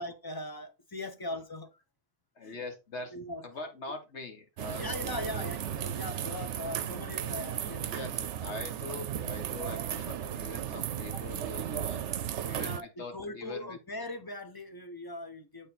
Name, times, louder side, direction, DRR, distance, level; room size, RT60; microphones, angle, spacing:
voice 1, 0.0-1.7 2.4-2.6 3.1-3.4 4.7-7.9 11.1-11.2 12.5-15.7, left 1 dB, 25° left, 0.7 m, -40 dB
voice 2, 2.4-3.2 3.4-5.5 7.6-13.8, left 3 dB, 70° left, 1.7 m, -43 dB
sound 1, 4.6-12.8, right 10 dB, 75° right, 0.9 m, -35 dB
7.8 x 4.3 x 4.1 m
omnidirectional pair, 1.2 m